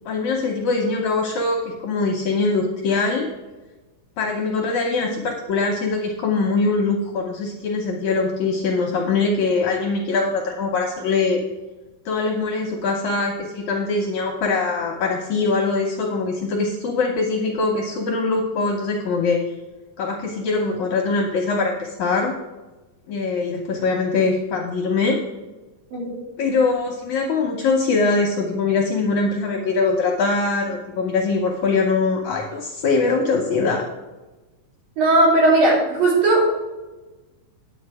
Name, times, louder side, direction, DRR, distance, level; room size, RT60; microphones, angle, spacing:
voice 1, 0.1-3.3 4.2-11.4 12.1-19.4 20.0-22.3 23.1-25.2 26.4-33.9, left 4 dB, 70° left, 1 dB, 1.9 m, -22 dB
voice 2, 35.0-36.5, right 2 dB, 70° right, -4 dB, 4.9 m, -17 dB
10.0 x 8.0 x 4.8 m, 1.1 s
omnidirectional pair, 4.4 m